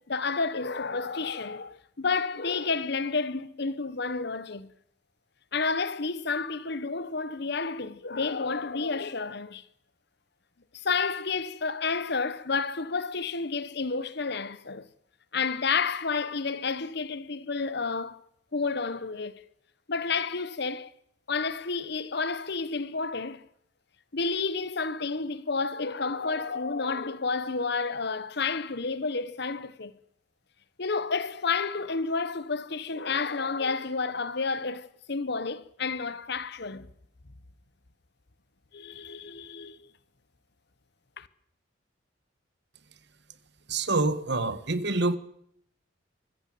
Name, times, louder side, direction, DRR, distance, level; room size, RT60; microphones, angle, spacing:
voice 1, 0.0-4.7 5.5-9.6 10.7-14.9 15.3-18.2 18.5-19.4 19.9-20.9 21.3-23.5 24.1-29.9 30.8-36.9 38.7-39.8 41.2-41.3, left 4 dB, 55° left, 1.0 m, -30 dB
voice 2, 43.7-45.2, right 2 dB, 60° right, 1.3 m, -26 dB
24.0 x 15.0 x 7.7 m
head